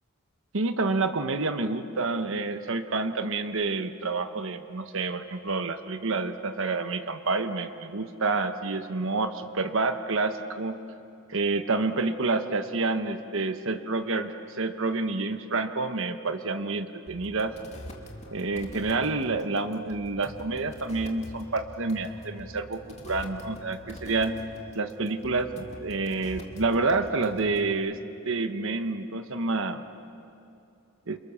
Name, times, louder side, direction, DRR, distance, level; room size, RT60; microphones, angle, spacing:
voice 1, 0.5-10.8 11.3-17.5 18.3-24.3 24.7-28.0 28.2-29.8 31.1-31.2, right 3 dB, 65° right, 8 dB, 1.2 m, -28 dB
sound 1, 17.1-27.7, left 1 dB, 30° left, 2.7 m, -44 dB
30.0 x 28.5 x 7.0 m, 2.7 s
head